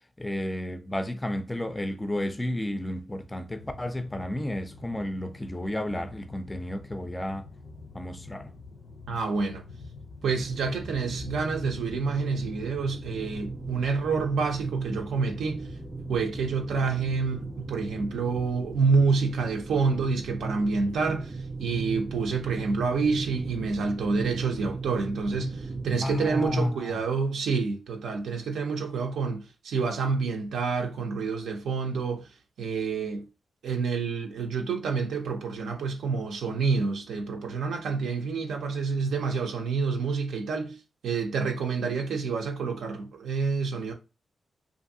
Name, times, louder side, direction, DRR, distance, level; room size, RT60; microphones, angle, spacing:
voice 1, 0.2-7.5 7.9-8.5 26.0-27.0, left 1 dB, 15° left, 0.4 m, -32 dB
sound 1, 3.5-18.1, left 4 dB, 75° left, 0.5 m, -47 dB
voice 2, 9.1-9.6 10.2-15.7 16.1-32.3 32.6-33.2 33.6-40.8 41.0-43.9, right 4 dB, 90° right, 0.4 m, -28 dB
sound 2, 10.2-26.6, right 3 dB, 30° right, 0.6 m, -37 dB
2.6 x 2.5 x 2.6 m
cardioid pair, 65°, 0 cm